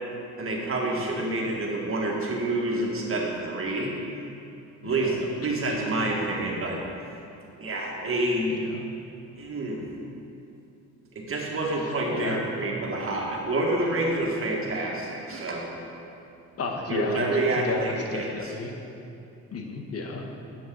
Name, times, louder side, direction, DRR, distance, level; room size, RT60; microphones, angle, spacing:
voice 1, 0.4-3.9 4.8-6.8 7.6-8.6 9.4-9.8 11.2-15.7 16.9-18.5, right 2 dB, 45° right, -2 dB, 1.9 m, -28 dB
voice 2, 0.9-1.5 4.8-5.1 5.8-5.9 8.7-8.8 11.8-12.4 16.6-17.3 17.6-18.7 19.5-20.4, left 3 dB, 50° left, 2 dB, 1.2 m, -33 dB
11.5 x 7.3 x 3.9 m, 2.8 s
cardioid pair, 90°, 30 cm